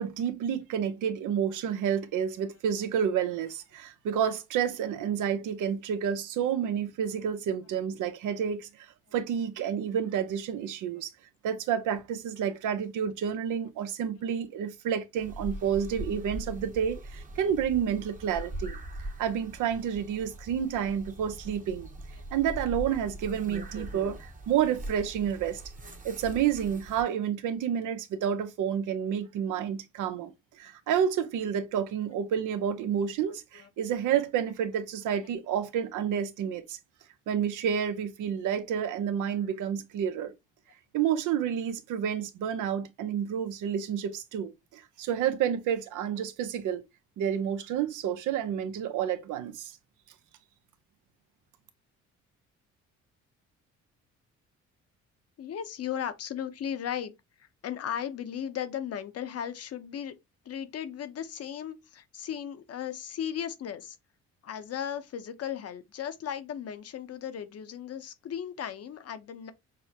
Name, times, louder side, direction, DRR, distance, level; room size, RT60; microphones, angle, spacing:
voice 1, 0.0-11.1 11.4-18.8 19.2-21.9 22.3-25.6 26.0-30.3 30.6-36.8 37.3-40.3 40.9-46.8 47.2-49.8, right 8 dB, 85° right, 0.7 m, -30 dB
sound 1, 15.2-27.0, right 1 dB, 25° right, 0.9 m, -41 dB
voice 2, 55.4-57.1 57.4-60.1 60.4-64.0 64.4-69.5, left 9 dB, 55° left, 0.8 m, -36 dB
6.2 x 2.1 x 2.8 m
cardioid pair, 90°, 30 cm